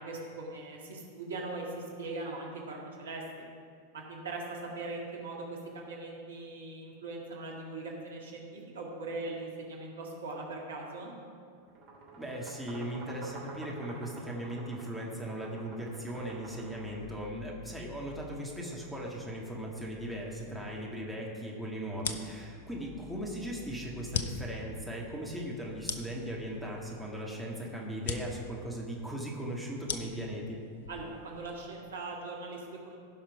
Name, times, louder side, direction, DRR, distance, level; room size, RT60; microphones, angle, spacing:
voice 1, 0.0-3.2 3.9-11.1 30.9-33.0, right 2 dB, 65° right, -1 dB, 1.8 m, -40 dB
sound 1, 11.7-17.4, right 2 dB, 45° right, 3.1 m, -49 dB
voice 2, 12.2-30.6, right 1 dB, ahead, -3 dB, 1.9 m, -38 dB
sound 2, 15.4-27.1, left 5 dB, 40° left, 1.6 m, -55 dB
sound 3, 21.9-31.8, left 6 dB, 65° left, 0.7 m, -41 dB
16.0 x 5.8 x 4.8 m, 2.3 s
figure-of-eight pair, 90°, 0 cm